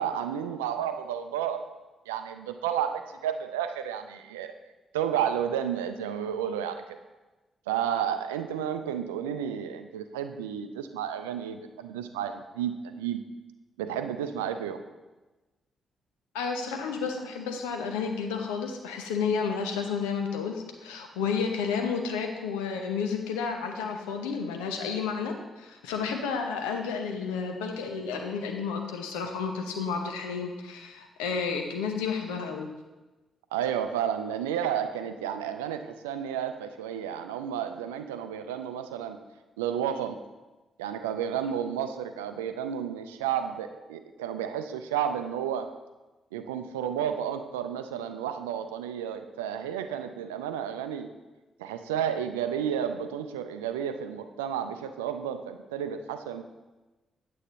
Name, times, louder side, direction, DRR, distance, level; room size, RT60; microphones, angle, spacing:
voice 1, 0.0-1.6 2.1-4.5 4.9-7.0 7.7-13.2 13.8-14.8 33.5-39.2 39.6-40.2 40.8-45.7 46.3-51.1 51.6-56.4, right 9 dB, 85° right, 8 dB, 0.4 m, -31 dB
voice 2, 16.3-32.7, left 5 dB, 80° left, 4 dB, 0.8 m, -31 dB
8.6 x 8.5 x 3.1 m, 1.1 s
hypercardioid pair, 40°, 0 cm